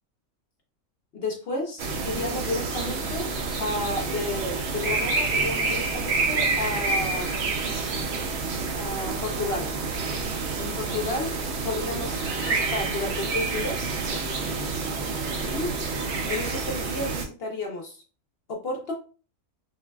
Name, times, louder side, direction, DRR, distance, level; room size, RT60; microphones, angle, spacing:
voice 1, 1.1-3.3 3.6-7.4 8.8-9.7 10.6-11.3 11.6-12.2 12.5-13.9 15.5-15.7 16.3-18.0 18.5-18.9, left 2 dB, 55° left, 0 dB, 0.7 m, -32 dB
sound 1, 1.8-17.2, right 3 dB, 65° right, 0.7 m, -28 dB
Meow, 11.9-12.7, left 4 dB, 70° left, 1.0 m, -44 dB
3.7 x 2.4 x 2.2 m, 0.36 s
omnidirectional pair, 1.6 m